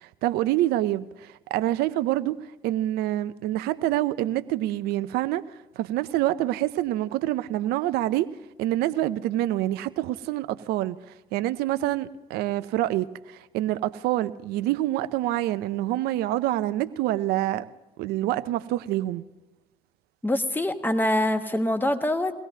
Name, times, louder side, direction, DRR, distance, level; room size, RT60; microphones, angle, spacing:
voice 1, 0.0-8.3 8.6-11.0 11.3-17.6 18.0-19.2, right 14 dB, 80° right, 0.6 m, -26 dB
voice 2, 20.2-22.3, left 1 dB, 10° left, 1.3 m, -24 dB
23.0 x 17.0 x 2.7 m
hypercardioid pair, 55°, 16 cm